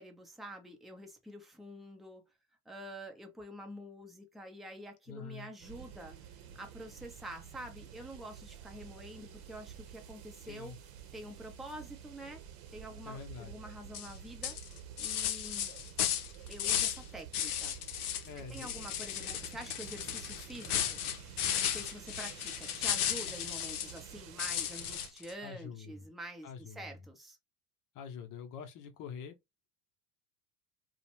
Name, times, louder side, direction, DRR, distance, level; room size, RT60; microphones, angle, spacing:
voice 1, 0.0-2.2 2.7-6.2 6.5-10.7 11.1-12.4 12.7-14.6 15.0-15.7 16.5-17.7 18.5-21.0 21.5-27.4, right 1 dB, ahead, 0.6 m, -47 dB
voice 2, 5.1-5.5 10.5-10.8 13.0-13.6 18.2-18.9 25.4-26.1 26.4-27.0 27.9-29.4, left 6 dB, 45° left, 0.8 m, -46 dB
sound 1, 5.6-25.1, right 9 dB, 55° right, 0.8 m, -50 dB
sound 2, 13.9-14.1 14.4-17.0 17.3-18.3 18.5-24.0 24.4-25.3, left 10 dB, 80° left, 0.6 m, -34 dB
2.4 x 2.1 x 3.0 m
hypercardioid pair, 80°, 45 cm